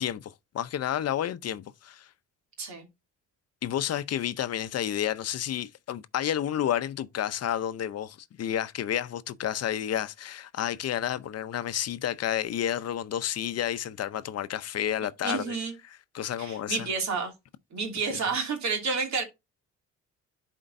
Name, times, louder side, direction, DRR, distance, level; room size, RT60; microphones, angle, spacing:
voice 1, 0.0-2.1 3.6-15.6 15.8-16.9, left 10 dB, 55° left, 0.6 m, -30 dB
voice 2, 15.2-15.7 16.4-17.3 17.7-19.2, right 4 dB, 65° right, 2.6 m, -30 dB
11.0 x 4.5 x 2.6 m
cardioid pair, 90°, 30 cm